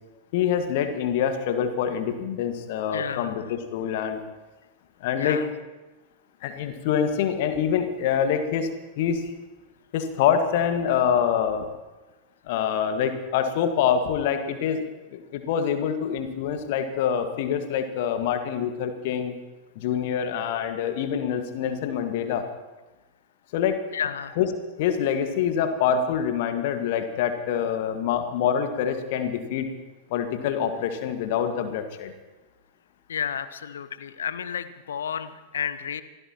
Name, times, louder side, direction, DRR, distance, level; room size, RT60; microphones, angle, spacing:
voice 1, 0.3-4.2 5.0-5.4 6.4-8.7 9.0-9.3 9.9-11.7 12.5-19.3 19.7-22.5 23.5-23.8 24.4-24.5 24.8-29.7 30.1-32.1, left 8 dB, 50° left, 7 dB, 1.7 m, -25 dB
voice 2, 2.9-3.4 5.2-5.5 23.9-24.3 33.1-36.0, left 8 dB, 65° left, 13 dB, 0.8 m, -31 dB
26.0 x 16.5 x 3.0 m, 1.1 s
figure-of-eight pair, 90°, 0 cm